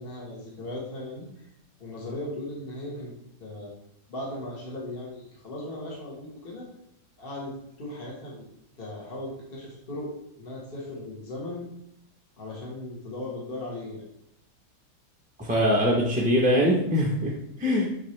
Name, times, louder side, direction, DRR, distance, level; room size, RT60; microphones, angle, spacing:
voice 1, 0.0-1.4 1.8-3.1 3.4-3.7 4.1-6.6 7.2-8.4 8.8-10.1 10.4-11.7 12.4-14.0, left 1 dB, 30° left, -4 dB, 1.7 m, -37 dB
voice 2, 15.4-17.3 17.6-17.9, equal, 5° right, -4 dB, 0.6 m, -22 dB
9.0 x 3.8 x 3.3 m, 0.79 s
omnidirectional pair, 2.0 m